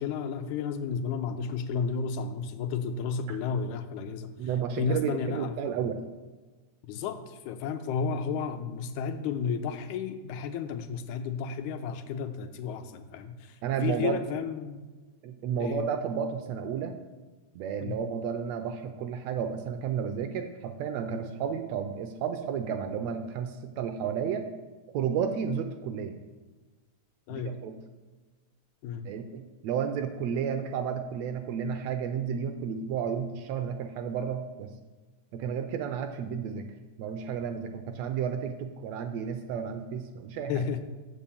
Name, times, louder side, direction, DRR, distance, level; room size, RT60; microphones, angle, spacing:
voice 1, 0.0-4.5 4.8-5.7 6.8-14.9 15.6-15.9 17.8-18.0 27.3-27.6 28.8-29.1 40.5-40.8, left 6 dB, 85° left, 8 dB, 2.1 m, -32 dB
voice 2, 4.4-6.0 13.6-14.2 15.2-17.0 17.5-24.5 24.9-26.2 27.3-27.7 29.0-34.7 35.3-36.7 37.0-40.6, right 7 dB, 80° right, 7 dB, 1.6 m, -32 dB
7.4 x 5.3 x 6.9 m, 1.3 s
omnidirectional pair, 3.4 m